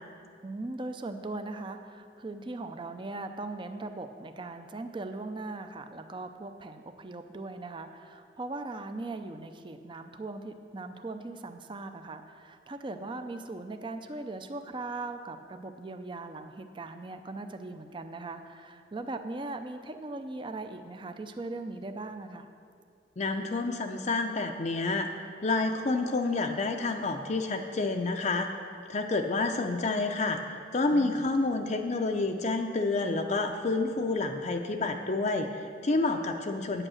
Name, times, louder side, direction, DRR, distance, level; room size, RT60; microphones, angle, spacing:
voice 1, 0.4-22.5 30.9-31.3, right 2 dB, 30° right, 8 dB, 0.5 m, -39 dB
voice 2, 23.2-28.5 28.9-36.9, left 3 dB, 40° left, 4 dB, 0.5 m, -29 dB
8.9 x 8.7 x 6.3 m, 2.3 s
head